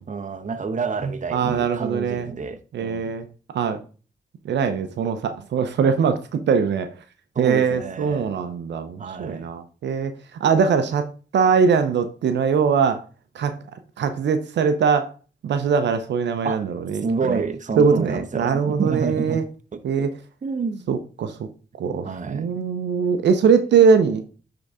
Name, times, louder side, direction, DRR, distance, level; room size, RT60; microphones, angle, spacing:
voice 1, 0.1-3.1 7.3-8.3 9.0-9.5 16.4-16.6 17.0-19.4 19.7-19.8 20.4-20.8 22.0-22.5, right 4 dB, 45° right, 0.9 m, -28 dB
voice 2, 1.3-2.3 2.7-3.3 3.5-3.8 4.4-6.9 7.4-10.1 10.4-11.0 11.3-13.0 13.3-13.5 14.0-15.1 15.4-17.4 17.8-19.4 19.8-20.1 20.9-21.5 21.8-24.2, right 6 dB, 80° right, 0.7 m, -21 dB
9.6 x 3.9 x 3.6 m
supercardioid pair, 50°, 18 cm